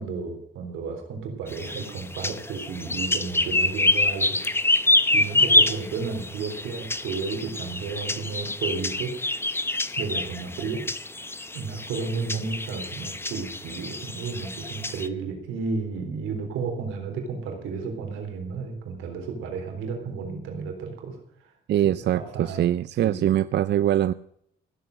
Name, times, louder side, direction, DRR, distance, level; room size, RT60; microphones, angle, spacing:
voice 1, 0.0-4.4 5.1-9.2 10.0-10.9 11.5-21.5 22.1-22.7 23.0-23.3, right 5 dB, 90° right, 3 dB, 3.7 m, -32 dB
sound 1, 1.5-15.1, left 2 dB, 10° left, 0.8 m, -26 dB
voice 2, 21.7-24.1, right 11 dB, 60° right, 15 dB, 0.5 m, -23 dB
15.0 x 7.8 x 7.8 m, 0.71 s
cardioid pair, 90°, 20 cm